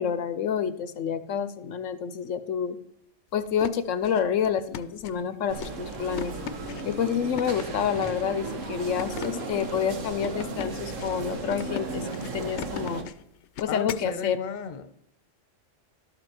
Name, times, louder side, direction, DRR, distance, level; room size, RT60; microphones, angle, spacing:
voice 1, 0.0-2.8 3.3-6.3 6.8-13.1 13.6-14.4, left 8 dB, 90° left, 12 dB, 1.1 m, -28 dB
sound 1, 3.4-14.1, left 9 dB, 70° left, 0.9 m, -40 dB
sound 2, 5.5-13.0, right 3 dB, 85° right, 1.6 m, -35 dB
voice 2, 13.7-14.9, left 6 dB, 40° left, 9 dB, 0.9 m, -34 dB
12.0 x 6.9 x 4.4 m, 0.79 s
omnidirectional pair, 1.3 m